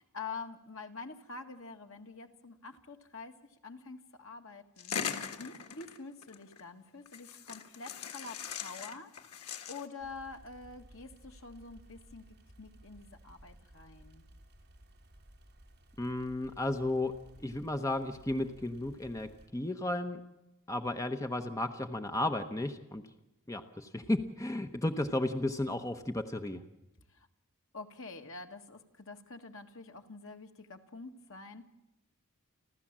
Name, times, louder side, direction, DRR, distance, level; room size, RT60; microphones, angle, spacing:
voice 1, 0.0-3.3 3.6-4.9 5.4-12.3 12.6-14.2 27.1-27.3 27.7-31.7, left 4 dB, 65° left, 5 dB, 1.8 m, -47 dB
sound 1, 4.8-6.6 7.1-9.9, left 7 dB, 90° left, 1.6 m, -40 dB
sound 2, 10.0-19.5, right 1 dB, 50° right, 3.5 m, -57 dB
voice 2, 16.0-17.1 17.4-20.2 20.7-23.0 23.5-26.6, left 1 dB, 15° left, 7 dB, 0.9 m, -34 dB
30.0 x 13.0 x 7.4 m, 0.93 s
head